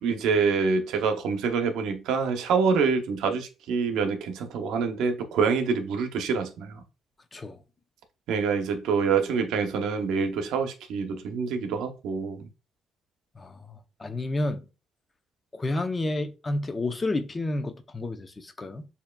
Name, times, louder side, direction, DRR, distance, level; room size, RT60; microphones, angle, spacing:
voice 1, 0.0-6.8 8.3-12.5, right 5 dB, 90° right, 0.8 m, -26 dB
voice 2, 13.4-14.7 15.5-18.9, left 2 dB, 30° left, 0.6 m, -30 dB
6.7 x 2.8 x 2.3 m
cardioid pair, 90°, 0 cm